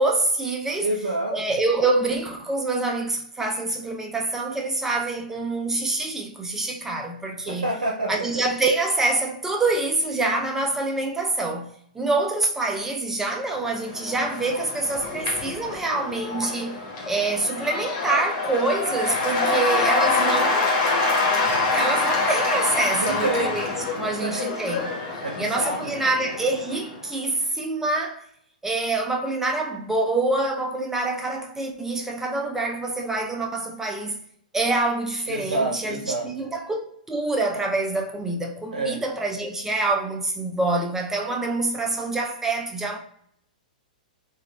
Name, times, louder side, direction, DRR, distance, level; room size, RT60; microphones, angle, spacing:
voice 1, 0.0-0.9 1.3-7.7 8.1-20.7 21.7-24.9 25.4-28.2 28.6-34.2 34.5-43.0, right 2 dB, 10° right, 0.4 m, -26 dB
voice 2, 0.8-1.4 7.4-8.4 22.9-23.5 24.0-24.5 25.2-26.0 35.3-36.3 38.7-39.0, right 2 dB, 90° right, 0.6 m, -28 dB
Cheering / Applause / Crowd, 13.5-27.0, left 3 dB, 45° left, 1.2 m, -26 dB
3.8 x 2.3 x 2.2 m
hypercardioid pair, 130°, 5 cm